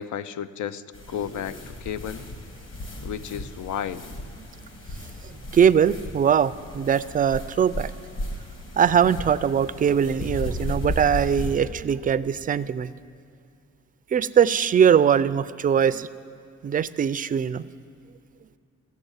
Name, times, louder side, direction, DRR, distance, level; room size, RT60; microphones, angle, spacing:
voice 1, 0.0-2.3 3.0-4.1, left 9 dB, 75° left, 14 dB, 0.5 m, -33 dB
sound 1, 0.9-11.6, left 1 dB, 45° left, 2.1 m, -35 dB
voice 2, 5.2-7.9 8.8-12.9 14.1-16.1 16.6-17.7, right 8 dB, 30° right, 15 dB, 0.4 m, -21 dB
15.0 x 7.2 x 8.0 m, 2.5 s
cardioid pair, 90°, 30 cm